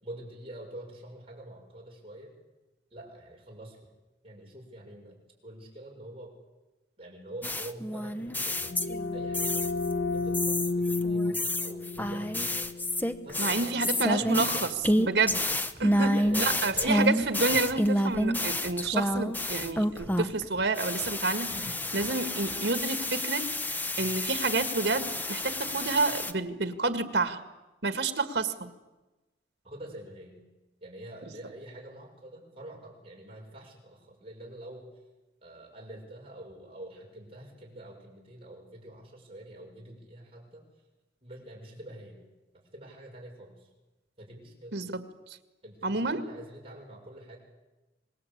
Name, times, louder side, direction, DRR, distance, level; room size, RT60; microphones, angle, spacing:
voice 1, 0.0-2.3 2.9-3.9 4.2-6.3 7.0-8.8 9.1-9.7 10.1-12.7 13.2-14.7 16.1-17.1 17.5-17.6 20.0-20.1 21.5-21.8 23.9-24.1 29.6-30.4 30.8-34.9 35.4-40.6 41.2-42.2 42.5-43.7 44.2-44.8 45.6-47.4, right 1 dB, 35° right, -1 dB, 6.9 m, -45 dB
sound 1, 7.4-9.9 10.3-20.4 20.8-26.3, left 1 dB, 10° left, 0.9 m, -29 dB
sound 2, 8.2-13.8, left 3 dB, 80° left, 1.6 m, -32 dB
voice 2, 13.4-14.6 15.1-15.4 15.8-21.5 21.9-27.4 27.8-28.7 44.7-45.0 45.8-46.3, right 3 dB, 85° right, 9 dB, 1.9 m, -29 dB
sound 3, 15.2-22.9, right 1 dB, 10° right, 4.5 m, -55 dB
26.0 x 20.5 x 8.7 m, 1.1 s
head